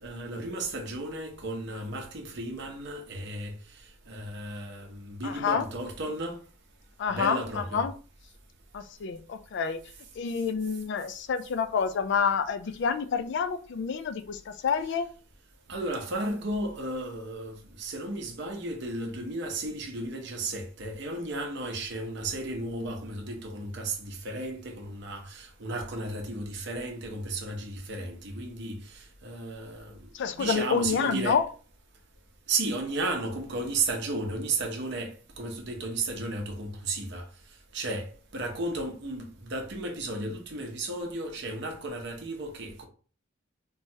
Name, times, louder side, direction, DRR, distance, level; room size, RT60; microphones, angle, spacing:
voice 1, 0.0-3.5 4.1-6.4 7.1-7.8 15.7-30.0 30.3-31.4 32.5-37.3 37.7-42.8, right 2 dB, 55° right, 0.7 m, -34 dB
voice 2, 5.2-5.7 7.0-7.9 8.7-9.8 10.2-15.1 30.1-31.4, left 6 dB, 55° left, 0.3 m, -28 dB
3.1 x 2.3 x 2.7 m
head